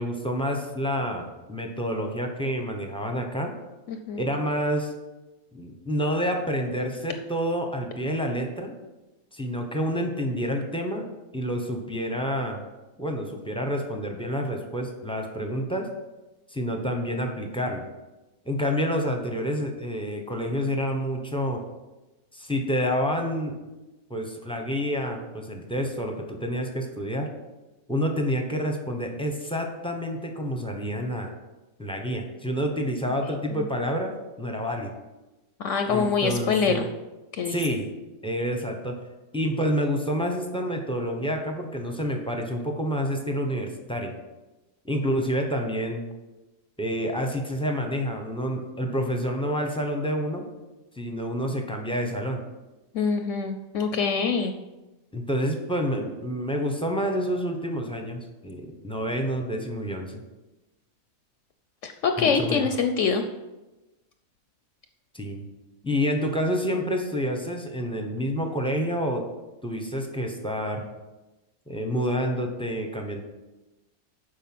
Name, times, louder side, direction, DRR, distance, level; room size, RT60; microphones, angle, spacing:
voice 1, 0.0-3.5 4.2-4.9 5.5-8.7 9.3-11.1 11.3-12.6 13.0-15.9 16.5-17.9 18.5-21.6 22.3-23.6 24.1-27.3 27.9-31.3 31.8-34.9 35.8-36.9 37.5-37.9 38.2-39.0 39.3-44.1 44.8-46.1 46.8-50.4 51.0-52.4 55.1-60.2 62.2-62.7 65.1-65.4 65.8-69.3 69.6-70.8 71.7-73.2, equal, 5° left, 3 dB, 0.7 m, -28 dB
voice 2, 3.9-4.2 35.6-36.9 37.3-37.6 52.9-54.5 61.8-63.2, left 5 dB, 65° left, 6 dB, 0.8 m, -25 dB
7.4 x 5.3 x 6.0 m, 1.1 s
omnidirectional pair, 1.5 m